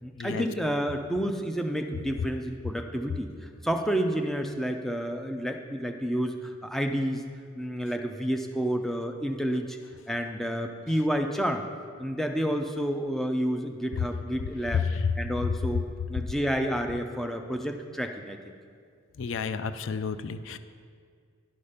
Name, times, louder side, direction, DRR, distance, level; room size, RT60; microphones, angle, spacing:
voice 1, 0.0-7.3 7.6-9.8 10.1-11.7 12.0-14.9 15.2-18.4, equal, ahead, 4 dB, 0.4 m, -30 dB
voice 2, 14.7-15.1 19.2-20.6, left 6 dB, 65° left, 11 dB, 0.4 m, -30 dB
11.0 x 5.0 x 5.6 m, 2.1 s
head